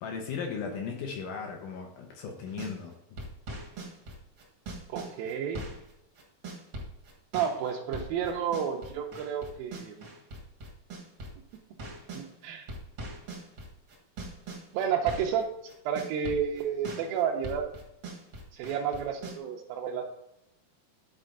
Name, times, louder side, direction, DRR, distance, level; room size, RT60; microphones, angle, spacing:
voice 1, 0.0-3.2, left 5 dB, 85° left, 2 dB, 1.8 m, -37 dB
sound 1, 2.5-2.8 3.2-12.3 12.7-15.4 15.7-19.4, right 2 dB, 65° right, 1.2 m, -41 dB
voice 2, 4.9-5.6 7.3-10.0 12.1-12.7 14.7-15.5 15.9-17.7 18.5-20.0, right 7 dB, 85° right, 0 dB, 2.1 m, -31 dB
10.5 x 4.4 x 3.7 m, 0.84 s
omnidirectional pair, 4.9 m